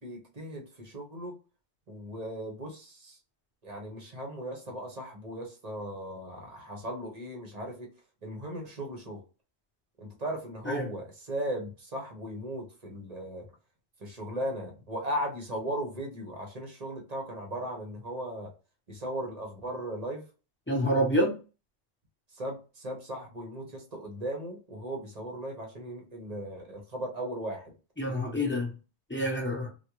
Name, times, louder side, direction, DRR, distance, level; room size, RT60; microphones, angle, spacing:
voice 1, 0.0-1.4 1.9-3.2 3.6-7.9 8.2-9.2 10.0-13.5 14.0-18.5 18.9-20.2 22.3-27.7, right 1 dB, 40° right, 0.8 m, -37 dB
voice 2, 20.7-21.3 28.0-28.7 29.1-29.7, equal, 15° left, 0.6 m, -27 dB
3.5 x 2.3 x 3.0 m
omnidirectional pair, 1.1 m